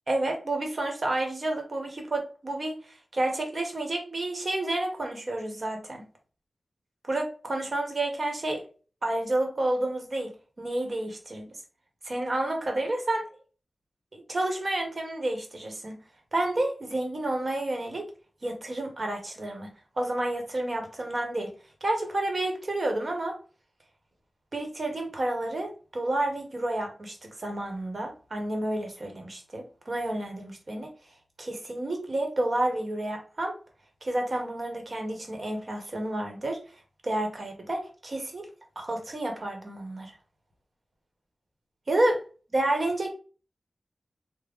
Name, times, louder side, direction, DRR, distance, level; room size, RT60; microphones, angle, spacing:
voice 1, 0.1-6.0 7.1-8.6 9.0-10.3 10.6-11.5 12.0-13.2 14.1-16.0 16.3-18.0 18.4-19.7 20.0-21.5 21.8-23.4 24.5-30.9 31.4-33.5 34.0-36.6 37.0-38.5 38.8-40.1 41.9-42.2 42.5-43.1, right 1 dB, 50° right, 3 dB, 1.0 m, -30 dB
3.7 x 2.1 x 3.5 m, 0.37 s
wide cardioid pair, 80°, 0 cm